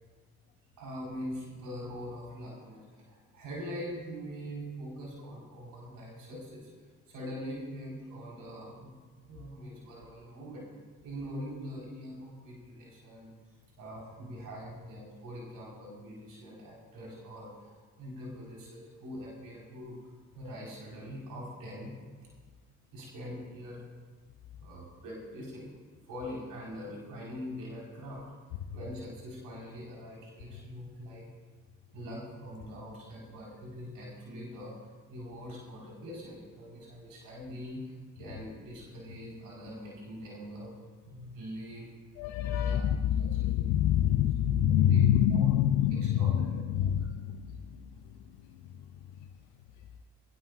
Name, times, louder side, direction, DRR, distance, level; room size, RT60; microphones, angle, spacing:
voice 1, 0.8-6.7 7.1-8.9 9.3-10.6 11.0-13.3 13.8-20.0 20.3-21.9 22.9-23.8 24.6-25.7 26.1-28.3 28.7-31.2 31.9-34.7 35.1-41.8 42.5-42.9 43.4-43.7 44.7-45.5 46.0-46.4 47.0-47.1, equal, 70° right, -3 dB, 4.8 m, -43 dB
voice 2, 42.2-47.9, left 10 dB, 80° left, 6 dB, 0.7 m, -26 dB
20.5 x 18.0 x 2.5 m, 1.5 s
hypercardioid pair, 40°, 34 cm